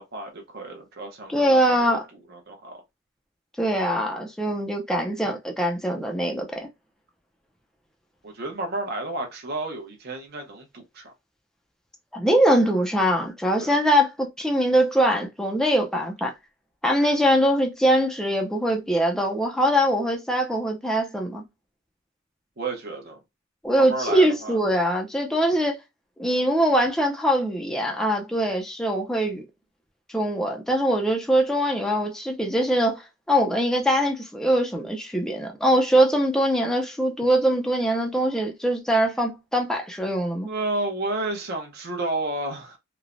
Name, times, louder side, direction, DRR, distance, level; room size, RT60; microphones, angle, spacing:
voice 1, 0.0-2.0 2.3-2.8 8.2-11.1 13.6-13.8 22.6-23.2 23.8-24.6 40.5-42.8, right 2 dB, 50° right, 0.6 m, -31 dB
voice 2, 1.3-2.0 3.6-6.7 12.1-16.3 16.8-21.4 23.6-25.8 26.2-29.4 30.1-40.5, equal, 5° left, 0.4 m, -22 dB
3.1 x 2.0 x 2.4 m
head